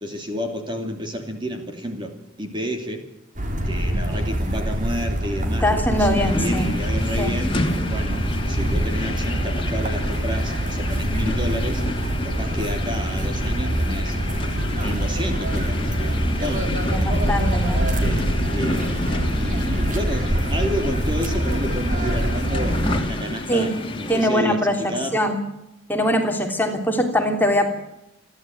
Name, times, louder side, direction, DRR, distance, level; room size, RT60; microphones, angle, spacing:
voice 1, 0.0-3.0 3.7-7.6 7.9-11.8 12.2-14.2 14.7-17.3 17.8-25.2, equal, 25° right, 4 dB, 2.8 m, -30 dB
sound 1, 3.4-23.0, right 1 dB, 40° right, 3.7 m, -24 dB
voice 2, 5.6-6.7 7.2-7.3 16.9-17.8 23.5-23.7 24.1-24.8 25.1-25.4 25.9-27.7, equal, 10° left, 3 dB, 3.2 m, -22 dB
sound 2, 6.1-24.3, left 2 dB, 25° left, 2.6 m, -30 dB
29.0 x 12.0 x 9.3 m, 0.87 s
head